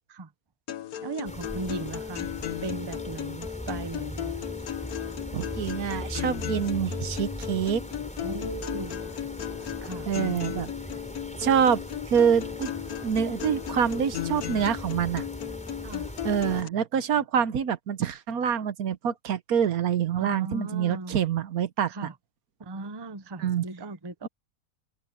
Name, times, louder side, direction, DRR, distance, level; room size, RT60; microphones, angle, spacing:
sound 1, 0.7-16.7, left 10 dB, 80° left, 1.4 m, -36 dB
voice 1, 1.0-2.3 2.6-4.5 8.2-9.1 9.8-10.1 15.8-16.1 20.2-21.2 21.9-22.1 22.6-24.3, right 3 dB, 20° right, 0.7 m, -37 dB
sound 2, 1.2-16.6, equal, 5° left, 5.6 m, -40 dB
voice 2, 5.3-7.8 10.1-10.7 11.4-12.7 13.0-15.3 16.2-22.1 23.4-23.6, right 8 dB, 80° right, 1.4 m, -26 dB
omnidirectional pair, 1.5 m